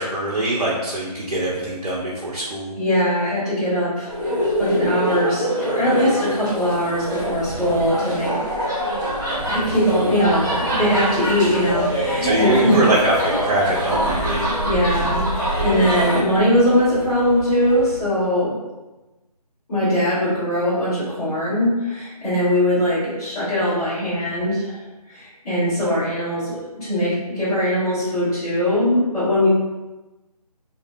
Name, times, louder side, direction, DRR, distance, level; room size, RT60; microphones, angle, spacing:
voice 1, 0.0-2.7 12.2-14.4, right 1 dB, 80° right, -6 dB, 0.7 m, -22 dB
voice 2, 2.8-8.4 9.4-12.9 14.6-15.2 15.6-18.6 19.7-24.8 25.1-29.5, equal, 10° left, -16 dB, 0.9 m, -21 dB
sound 1, 4.1-16.2, right 1 dB, 30° right, 0.9 m, -24 dB
sound 2, 9.4-18.0, left 1 dB, 75° left, 0.6 m, -34 dB
2.6 x 2.0 x 3.2 m, 1.1 s
figure-of-eight pair, 165°, 20 cm